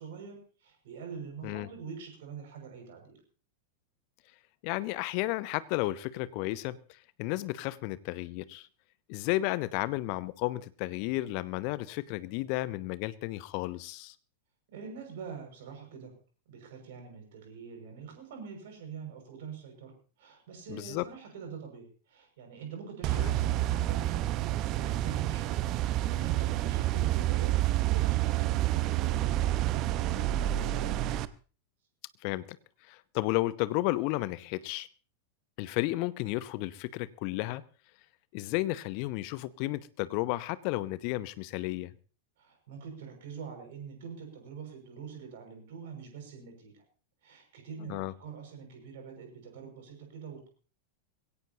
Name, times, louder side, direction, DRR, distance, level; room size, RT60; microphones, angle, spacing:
voice 1, 0.0-3.2 14.7-16.1 16.5-19.9 20.2-25.8 26.0-31.2 42.4-46.8 47.2-50.5, right 6 dB, 55° right, 6.0 m, -45 dB
voice 2, 4.6-6.8 7.2-8.7 9.1-14.1 20.7-21.0 23.1-23.3 32.2-32.6 32.9-34.9 35.6-37.6 38.3-41.9 47.8-48.1, left 18 dB, 45° left, 0.9 m, -33 dB
sound 1, 23.0-31.3, right 14 dB, 40° right, 0.7 m, -29 dB
21.5 x 17.0 x 2.9 m
figure-of-eight pair, 90°, 0 cm